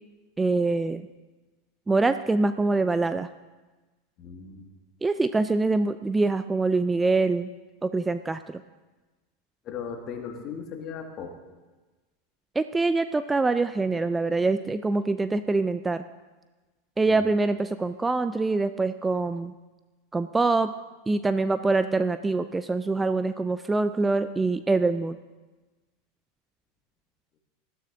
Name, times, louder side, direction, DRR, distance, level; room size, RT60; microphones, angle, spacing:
voice 1, 0.4-1.0 1.9-3.3 5.0-7.5 7.8-8.6 12.6-16.0 17.0-19.5 20.1-20.7 21.1-25.2, right 3 dB, 10° right, 12 dB, 0.3 m, -24 dB
voice 2, 4.2-4.7 9.6-11.3 17.1-17.3, left 6 dB, 35° left, 4 dB, 1.8 m, -37 dB
19.5 x 12.5 x 2.6 m, 1.2 s
figure-of-eight pair, 85°, 0 cm